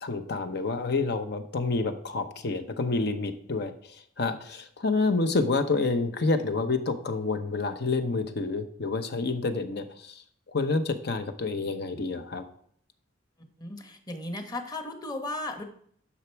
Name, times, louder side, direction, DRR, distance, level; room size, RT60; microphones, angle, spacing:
voice 1, 0.0-10.2 10.5-12.4, left 3 dB, 60° left, 8 dB, 0.9 m, -28 dB
voice 2, 13.6-15.6, left 2 dB, 20° left, 6 dB, 1.1 m, -35 dB
10.0 x 6.1 x 4.6 m, 0.63 s
head